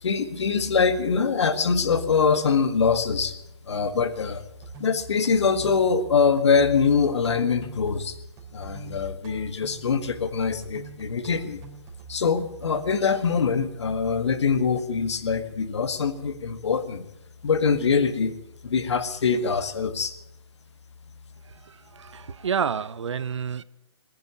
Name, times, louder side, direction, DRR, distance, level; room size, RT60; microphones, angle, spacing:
voice 1, 0.0-3.3 3.7-4.4 4.8-8.2 8.5-11.6 12.1-17.1 17.4-18.4 18.6-20.1, left 5 dB, 75° left, 1.7 m, -23 dB
sound 1, 4.5-12.9, right 5 dB, 25° right, 3.4 m, -44 dB
voice 2, 21.9-23.6, right 7 dB, 85° right, 0.7 m, -28 dB
20.0 x 10.5 x 7.0 m
hypercardioid pair, 155°, 15 cm